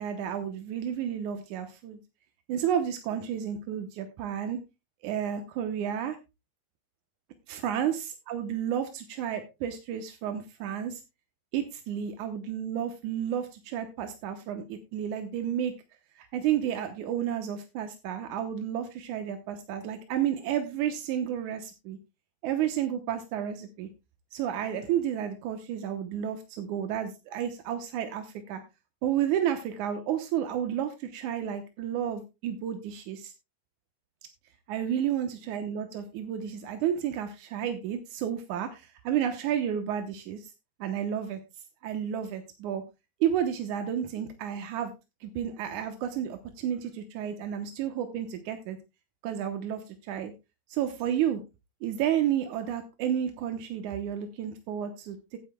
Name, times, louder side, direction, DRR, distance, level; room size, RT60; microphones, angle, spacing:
voice 1, 0.0-2.0 2.5-4.6 5.0-6.2 7.5-11.0 11.5-15.7 16.2-22.0 22.4-23.9 24.3-28.6 29.0-33.3 34.7-40.5 40.8-41.4 41.8-42.8 43.2-44.9 45.2-48.8 49.2-49.8 50.1-50.3 50.7-51.4 51.8-55.4, right 9 dB, 90° right, 6 dB, 2.4 m, -31 dB
16.5 x 8.6 x 2.2 m, 0.25 s
omnidirectional pair, 3.4 m